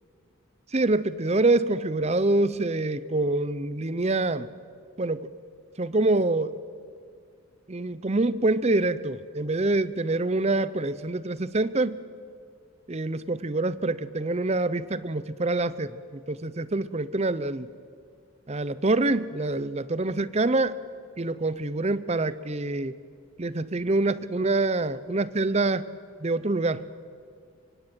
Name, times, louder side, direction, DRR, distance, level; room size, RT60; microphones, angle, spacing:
voice 1, 0.7-4.5 5.0-5.4 5.8-6.6 7.7-12.0 12.9-17.7 18.5-20.8 21.2-23.0 23.4-25.8 26.2-26.8, right 2 dB, 30° right, 16 dB, 0.7 m, -26 dB
24.5 x 24.0 x 9.0 m, 2.2 s
head